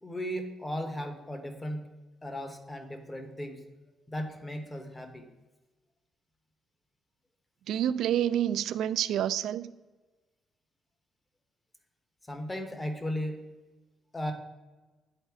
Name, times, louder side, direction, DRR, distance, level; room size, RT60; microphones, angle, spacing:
voice 1, 0.0-1.8 2.2-3.6 4.1-5.3 12.3-13.4 14.1-14.3, equal, 15° left, 7 dB, 1.0 m, -36 dB
voice 2, 7.7-9.7, right 10 dB, 80° right, 14 dB, 0.3 m, -28 dB
9.9 x 4.2 x 4.7 m, 1.2 s
cardioid pair, 125°, 0 cm